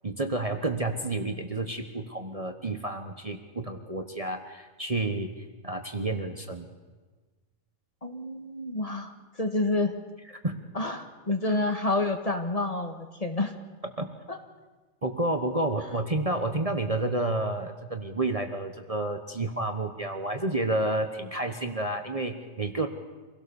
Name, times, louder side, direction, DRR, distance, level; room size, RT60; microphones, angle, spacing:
voice 1, 0.0-5.3 5.6-6.7 10.4-10.6 11.3-11.4 14.0-14.1 15.0-22.9, right 2 dB, 30° right, 6 dB, 1.2 m, -30 dB
voice 2, 8.0-10.0 10.7-13.5 14.3-14.4, left 2 dB, 30° left, 6 dB, 1.6 m, -29 dB
26.0 x 17.0 x 7.0 m, 1.3 s
omnidirectional pair, 1.4 m